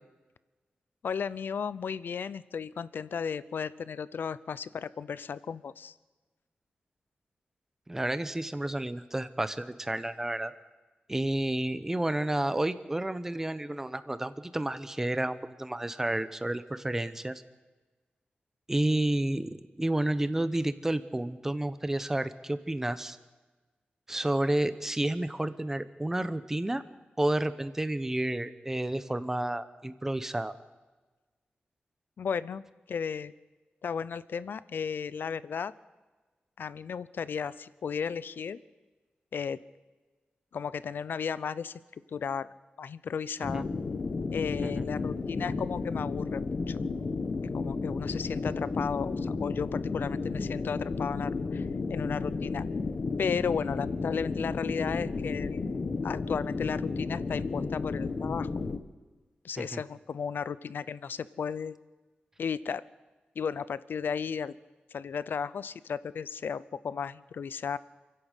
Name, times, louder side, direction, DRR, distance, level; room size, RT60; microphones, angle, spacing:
voice 1, 1.0-5.9 32.2-32.6 32.9-33.3 33.8-35.7 36.6-38.6 39.3-39.6 40.5-41.7 42.1-42.5 42.8-43.6 44.3-46.8 47.5-52.7 53.2-55.6 56.0-58.5 59.4-61.8 62.4-62.8 63.4-64.5 64.9-67.8, left 6 dB, 85° left, 17 dB, 0.7 m, -34 dB
voice 2, 7.9-10.5 11.1-17.4 18.7-23.2 24.1-26.8 27.2-30.5 43.5-43.6 44.6-44.8 59.6-59.8, right 1 dB, 10° right, 12 dB, 0.9 m, -30 dB
sound 1, 43.4-58.8, left 4 dB, 45° left, 1.2 m, -33 dB
28.5 x 11.5 x 8.3 m, 1.2 s
wide cardioid pair, 165°, 3 cm